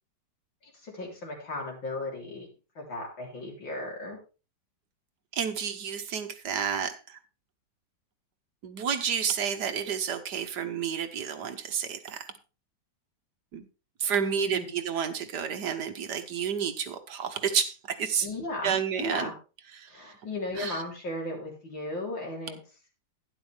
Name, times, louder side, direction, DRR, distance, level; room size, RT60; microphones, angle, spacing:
voice 1, 0.6-2.5 2.7-4.2 14.1-14.7 18.2-19.3 19.9-22.6, left 2 dB, 75° left, -1 dB, 4.5 m, -36 dB
voice 2, 5.3-7.2 8.6-12.3 13.5-13.7 14.0-18.3 18.6-19.3 19.8-20.1 20.6-20.8, right 7 dB, 60° right, 7 dB, 1.6 m, -30 dB
12.0 x 10.5 x 3.4 m, 0.33 s
omnidirectional pair, 2.1 m